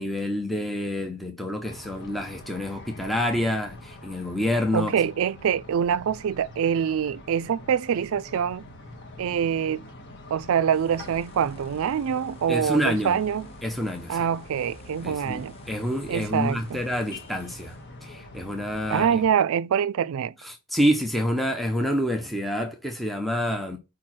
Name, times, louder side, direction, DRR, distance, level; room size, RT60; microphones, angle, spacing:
voice 1, 0.0-4.9 12.5-13.2 13.6-14.3 15.0-17.8 18.0-19.2 20.4-23.8, equal, ahead, 0.7 m, -27 dB
sound 1, 1.6-19.3, left 1 dB, 50° left, 1.4 m, -45 dB
voice 2, 4.7-8.7 9.2-9.8 10.3-13.5 14.1-15.6 16.1-16.8 18.9-20.3, right 8 dB, 65° right, 0.4 m, -25 dB
sound 2, 10.7-17.9, equal, 25° left, 1.2 m, -51 dB
4.7 x 4.5 x 5.9 m
head